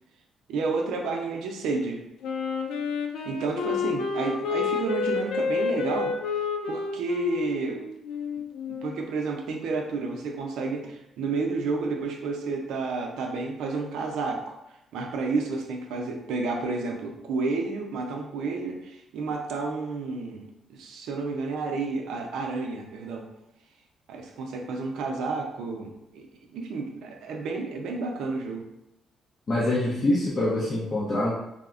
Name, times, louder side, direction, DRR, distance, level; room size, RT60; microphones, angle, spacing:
voice 1, 0.5-2.0 3.2-6.1 6.7-7.8 8.7-14.6 14.9-20.4 20.7-23.3 24.1-26.3 26.5-28.7, right 3 dB, 85° right, 2 dB, 0.4 m, -31 dB
Wind instrument woodwind instrument, 2.2-9.0, left 5 dB, 85° left, 0.3 m, -29 dB
voice 2, 29.5-31.4, left 1 dB, 45° left, -6 dB, 0.6 m, -25 dB
3.4 x 2.0 x 2.4 m, 0.86 s
cardioid pair, 90°, 0 cm